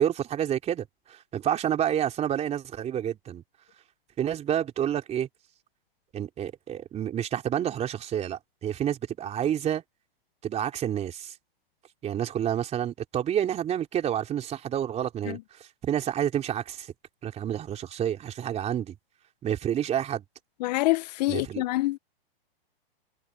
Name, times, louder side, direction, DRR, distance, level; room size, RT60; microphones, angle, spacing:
voice 1, 0.0-3.4 4.2-5.3 6.1-9.8 10.4-11.4 12.0-16.9 17.2-19.0 19.4-20.2 21.3-21.6, right 10 dB, 20° right, 3.7 m, -29 dB
voice 2, 20.6-22.0, left 19 dB, 45° left, 0.7 m, -26 dB
hypercardioid pair, 135°, 29 cm